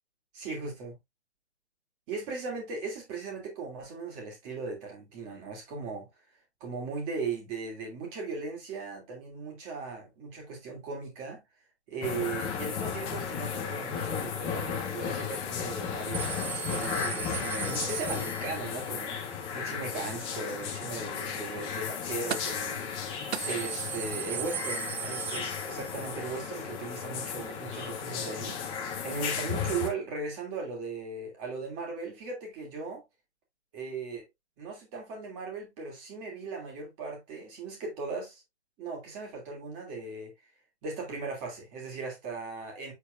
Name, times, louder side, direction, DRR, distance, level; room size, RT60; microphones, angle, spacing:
voice 1, 0.3-0.9 2.1-6.1 6.6-11.4 11.9-23.1 23.4-33.0 33.7-34.3 34.6-38.4 38.8-40.3 40.8-42.9, right 4 dB, 20° right, 2.8 m, -38 dB
sound 1, 12.0-29.9, left 7 dB, 15° left, 1.0 m, -34 dB
sound 2, 16.1-18.8 22.3-22.7 23.0-23.1 23.3-26.1 26.4-26.5 27.5-27.6, right 10 dB, 70° right, 0.5 m, -37 dB
8.4 x 4.4 x 2.5 m
figure-of-eight pair, 140°, 34 cm